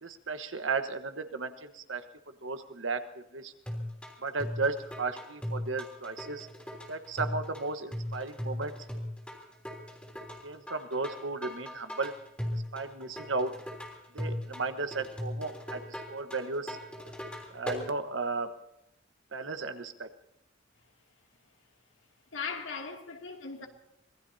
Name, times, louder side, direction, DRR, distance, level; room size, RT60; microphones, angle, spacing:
voice 1, 0.0-2.0 2.4-3.5 4.2-6.5 6.9-8.7 10.4-12.1 12.7-13.5 14.1-16.8 17.5-18.5 19.3-20.1, right 3 dB, 75° right, 1.3 m, -34 dB
sound 1, 3.7-17.9, left 1 dB, 5° left, 3.4 m, -38 dB
voice 2, 22.3-23.7, left 5 dB, 80° left, 2.7 m, -38 dB
25.5 x 19.5 x 2.8 m
head